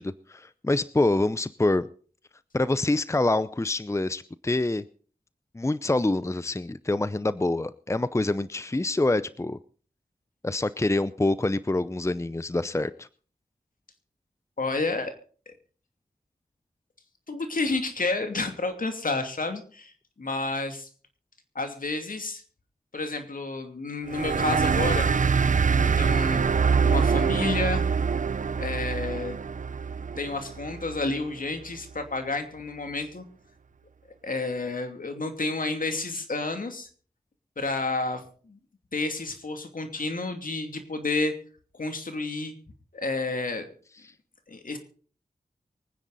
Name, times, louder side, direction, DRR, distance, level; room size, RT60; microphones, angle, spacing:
voice 1, 0.0-1.9 2.5-4.8 5.5-9.6 10.4-13.1, left 2 dB, 20° left, 16 dB, 0.7 m, -26 dB
voice 2, 14.6-15.1 15.5-15.6 17.3-19.9 20.2-20.9 21.5-22.4 22.9-25.1 25.8-26.5 26.8-27.8 28.6-29.4 30.2-33.2 34.2-36.9 37.6-38.6 38.9-41.3 41.7-42.5 42.9-43.7 44.5-44.8, left 3 dB, 65° left, 6 dB, 2.7 m, -30 dB
sound 1, 24.1-31.2, right 5 dB, 55° right, 0.6 m, -24 dB
24.0 x 9.9 x 4.1 m, 0.42 s
cardioid pair, 40°, 15 cm